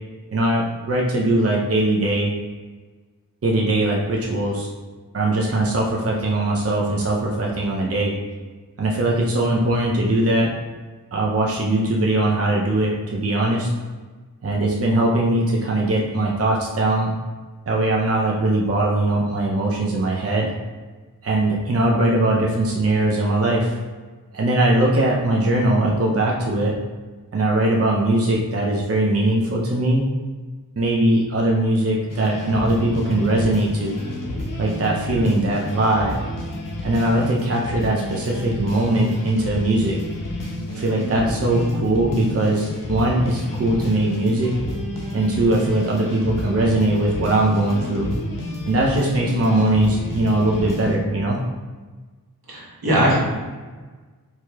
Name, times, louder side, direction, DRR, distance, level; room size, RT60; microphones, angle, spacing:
voice 1, 0.3-2.3 3.4-4.7 5.1-8.2 8.8-10.5 11.1-13.7 14.4-17.1 17.7-20.5 21.2-23.8 24.3-26.7 27.3-30.0 30.8-34.0 34.6-36.2 36.8-40.0 40.7-44.6 45.1-48.1 48.7-51.4, right 1 dB, 40° right, -2 dB, 0.6 m, -20 dB
sound 1, 32.1-51.0, left 1 dB, 60° left, 0.8 m, -30 dB
voice 2, 52.5-53.2, right 1 dB, 75° right, -5 dB, 1.1 m, -19 dB
4.6 x 2.9 x 2.3 m, 1.4 s
wide cardioid pair, 40°, 37 cm